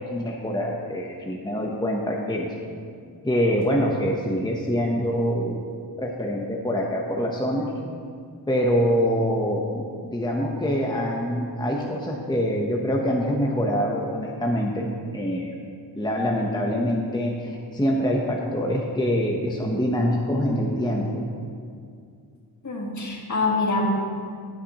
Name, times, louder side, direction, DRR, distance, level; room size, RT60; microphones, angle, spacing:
voice 1, 0.0-2.5 3.2-5.6 6.0-7.7 8.5-9.8 10.1-15.5 15.9-21.2, equal, 10° left, -1 dB, 0.9 m, -25 dB
voice 2, 22.6-23.9, left 3 dB, 45° left, -1 dB, 1.6 m, -25 dB
17.5 x 6.6 x 3.0 m, 2.2 s
wide cardioid pair, 110°, 41 cm